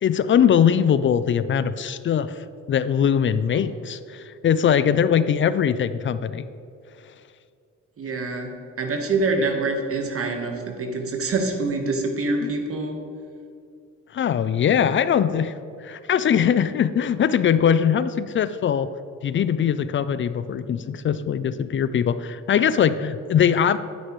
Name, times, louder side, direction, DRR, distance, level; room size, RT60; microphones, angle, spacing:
voice 1, 0.0-6.4 12.4-12.5 14.1-15.5 15.8-18.9 19.2-23.8, left 8 dB, 40° left, 14 dB, 0.4 m, -21 dB
voice 2, 8.0-8.5 8.8-13.0, right 3 dB, 50° right, 4 dB, 1.4 m, -25 dB
9.5 x 9.4 x 3.1 m, 2.5 s
cardioid pair, 90°, 30 cm